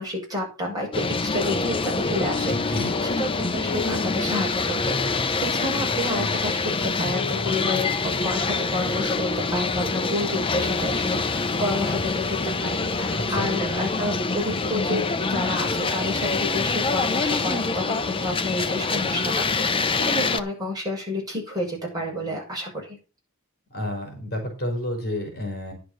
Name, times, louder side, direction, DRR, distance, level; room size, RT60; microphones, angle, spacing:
voice 1, 0.0-23.0, left 1 dB, 20° right, -2 dB, 6.5 m, -30 dB
sound 1, 0.9-20.4, left 4 dB, 25° left, 0.7 m, -25 dB
voice 2, 2.5-2.9 13.2-13.5 23.7-25.7, left 1 dB, 50° left, 3 dB, 4.4 m, -30 dB
10.5 x 6.8 x 6.2 m, 0.34 s
head